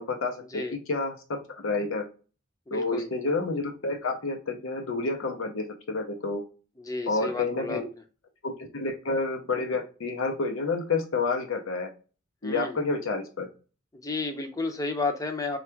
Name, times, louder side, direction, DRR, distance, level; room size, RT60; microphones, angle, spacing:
voice 1, 0.0-2.0 2.7-6.4 7.1-7.9 8.4-11.9 12.4-13.5, left 3 dB, 90° left, 4 dB, 0.7 m, -29 dB
voice 2, 2.7-3.1 6.8-7.8 12.4-12.8 13.9-15.6, left 3 dB, 15° left, 6 dB, 0.5 m, -32 dB
3.4 x 2.3 x 4.4 m, 0.35 s
head